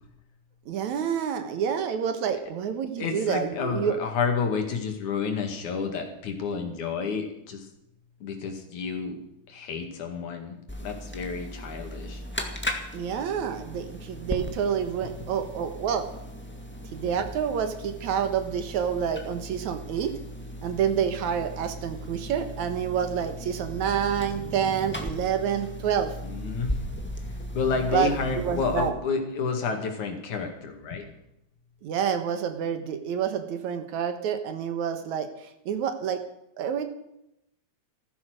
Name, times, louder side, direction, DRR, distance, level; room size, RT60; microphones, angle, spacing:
voice 1, 0.7-4.0 12.9-16.1 16.9-20.1 20.6-26.1 27.9-28.9 31.8-35.3 35.7-36.2 36.6-36.8, right 8 dB, 75° right, 8 dB, 2.7 m, -28 dB
voice 2, 3.0-7.7 8.2-9.2 9.5-12.2 15.0-15.2 26.2-26.8 27.5-31.1, left 5 dB, 75° left, 4 dB, 3.6 m, -30 dB
sound 1, 10.7-28.9, equal, 5° left, 1.0 m, -37 dB
15.0 x 13.5 x 6.4 m, 0.83 s
omnidirectional pair, 3.4 m